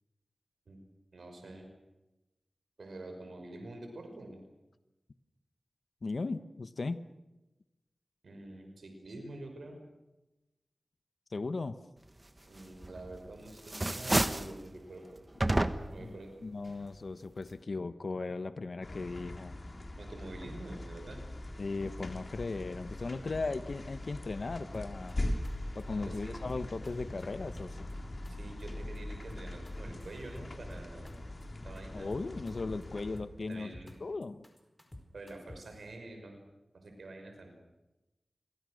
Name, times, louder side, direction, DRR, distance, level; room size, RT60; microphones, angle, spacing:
voice 1, 1.1-1.7 2.8-4.4 8.2-9.8 12.5-15.3 15.9-16.3 20.0-21.2 23.3-23.5 25.9-26.6 28.3-31.3 31.6-32.2 33.5-34.0 35.1-36.4 36.7-37.5, right 2 dB, 90° right, 4 dB, 5.8 m, -47 dB
voice 2, 6.0-7.0 11.3-11.8 16.0-19.6 21.6-25.2 25.7-27.9 31.9-33.7 34.0-34.4, left 3 dB, 60° left, 12 dB, 1.1 m, -37 dB
sound 1, 12.8-13.3 13.6-14.6 15.4-16.1, right 1 dB, 25° right, 1.2 m, -29 dB
sound 2, 18.8-33.2, left 1 dB, 40° left, 3.8 m, -41 dB
sound 3, 24.7-25.1 25.4-25.5 25.8-26.2 26.5-27.2 27.5-28.3 28.6-29.0 29.3-30.7 31.1-31.2 31.4-31.8 32.1-32.8 33.2-33.9 34.2-35.8, left 1 dB, 15° left, 4.8 m, -49 dB
29.0 x 24.0 x 6.5 m, 0.99 s
wide cardioid pair, 95°, 0 cm